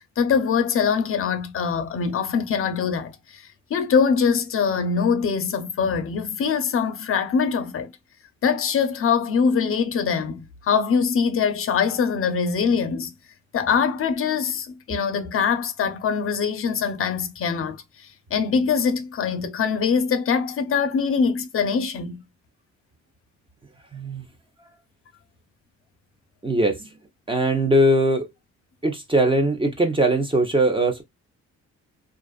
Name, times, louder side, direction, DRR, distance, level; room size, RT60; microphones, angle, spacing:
voice 1, 0.2-7.9 8.4-13.1 13.5-22.2, left 6 dB, 45° left, 0.6 m, -23 dB
voice 2, 23.9-24.2 26.4-26.9 27.3-28.3 28.8-31.0, right 1 dB, 15° right, 0.6 m, -20 dB
2.5 x 2.3 x 2.2 m
cardioid pair, 90°, 30 cm